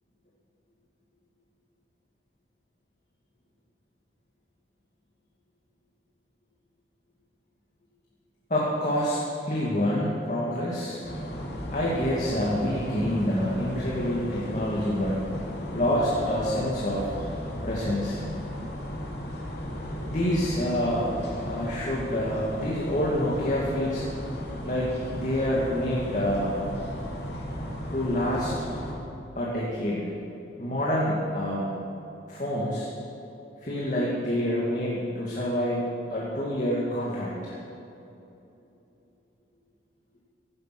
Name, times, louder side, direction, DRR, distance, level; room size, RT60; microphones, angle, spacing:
voice 1, 8.5-11.0 11.7-17.1 17.6-18.2 20.0-24.0 24.6-26.6 27.9-28.5 29.4-30.1 30.6-31.7 32.3-32.9 33.6-37.5, equal, 40° left, -6 dB, 2.4 m, -27 dB
sound 1, 11.0-28.9, equal, 65° left, 3.0 m, -35 dB
17.0 x 11.5 x 6.1 m, 2.9 s
head